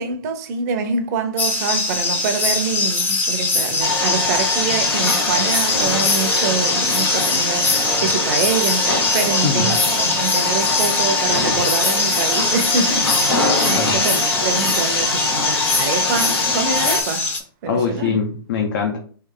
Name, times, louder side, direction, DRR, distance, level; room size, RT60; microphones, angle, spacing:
voice 1, 0.0-17.3 17.6-18.2, right 5 dB, 45° right, 0.7 m, -25 dB
sound 1, 1.4-17.4, left 3 dB, 15° left, 0.7 m, -22 dB
sound 2, 3.8-17.0, left 3 dB, 75° left, 1.1 m, -22 dB
voice 2, 17.7-19.0, left 6 dB, 55° left, 0.7 m, -22 dB
3.3 x 2.7 x 3.8 m
hypercardioid pair, 120°, 13 cm